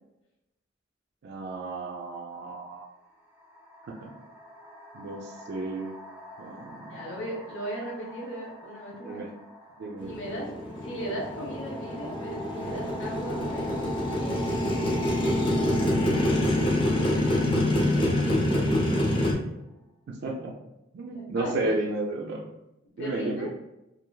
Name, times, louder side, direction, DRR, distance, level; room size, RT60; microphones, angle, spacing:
voice 1, 1.2-2.9 3.8-4.1 4.9-5.9 6.4-7.2 9.0-9.3 9.8-10.2 20.1-20.5 20.9-22.5 23.0-23.5, right 2 dB, 55° right, 0 dB, 0.3 m, -33 dB
sound 1, 3.0-19.6, left 1 dB, 10° right, 0.7 m, -43 dB
voice 2, 6.9-9.3 10.0-13.8 14.2-14.6 21.1-21.8 23.0-23.5, equal, 70° left, -3 dB, 0.7 m, -37 dB
Motorcycle, 10.0-19.3, left 1 dB, 25° left, 0.5 m, -26 dB
3.1 x 2.3 x 2.2 m, 0.92 s
head